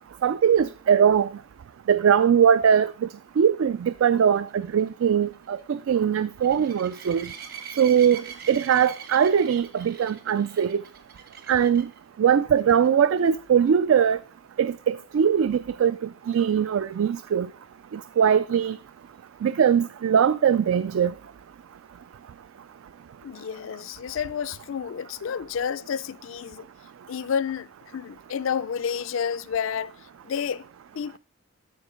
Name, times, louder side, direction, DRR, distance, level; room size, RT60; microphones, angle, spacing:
voice 1, 0.2-1.3 1.9-2.9 3.4-7.3 7.8-10.8 11.5-11.9 12.2-14.2 14.6-16.0 16.3-17.5 17.9-18.8 19.4-21.1, right 8 dB, 75° right, 0.3 m, -21 dB
sound 1, 4.1-12.0 12.6-12.9 13.2-13.3 13.7-13.8 17.3-17.4, right 8 dB, 45° right, 1.1 m, -43 dB
voice 2, 23.2-26.7 27.1-29.9 30.2-30.6 31.0-31.2, left 7 dB, 70° left, 0.3 m, -30 dB
13.0 x 4.5 x 5.0 m
head